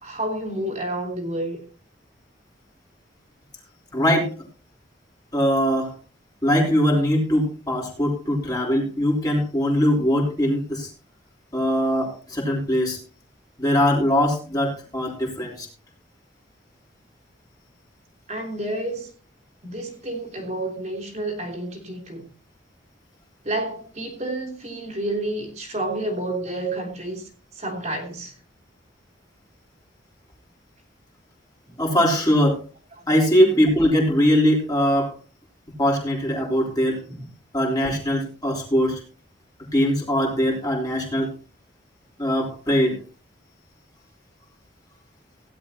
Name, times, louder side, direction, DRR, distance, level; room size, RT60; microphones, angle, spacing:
voice 1, 0.0-1.6 18.3-19.1 19.6-22.2 23.4-28.3 31.7-31.8 37.1-37.3, right 1 dB, 35° right, 3.1 m, -30 dB
voice 2, 3.9-4.3 5.3-6.0 6.4-10.9 11.5-13.0 13.6-15.7 31.8-32.6 33.1-35.1 35.8-37.0 37.5-39.0 39.7-41.3 42.2-43.0, equal, 20° left, 3.7 m, -21 dB
17.0 x 11.0 x 2.8 m
head